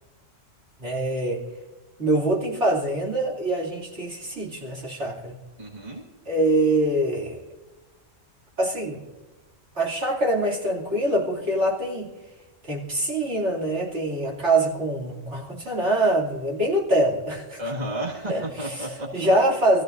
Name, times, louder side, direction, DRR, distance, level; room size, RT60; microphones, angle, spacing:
voice 1, 0.8-1.4 2.0-5.3 6.3-7.4 8.6-9.0 9.7-12.1 12.6-17.6 18.3-19.8, right 1 dB, 65° right, -3 dB, 3.1 m, -24 dB
voice 2, 5.6-6.0 17.6-19.3, right 1 dB, 35° right, -2 dB, 2.1 m, -32 dB
25.0 x 15.0 x 2.6 m, 1.1 s
omnidirectional pair, 1.3 m